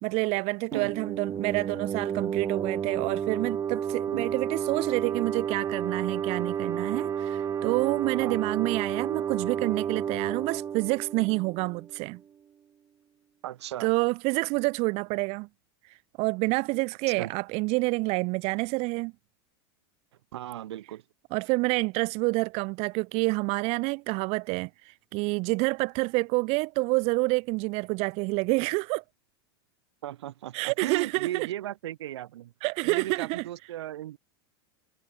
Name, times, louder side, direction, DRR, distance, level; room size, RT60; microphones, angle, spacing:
voice 1, 0.0-12.2 13.8-15.5 15.9-19.1 21.3-29.0 30.5-31.5 32.6-33.4, right 26 dB, 50° right, 3.5 m, -28 dB
sound 1, 0.7-12.1, right 8 dB, 20° right, 2.4 m, -31 dB
voice 2, 13.4-13.9 17.1-17.3 20.3-21.0 30.0-32.5 32.8-34.2, right 13 dB, 85° right, 6.9 m, -36 dB
supercardioid pair, 140°, 14 cm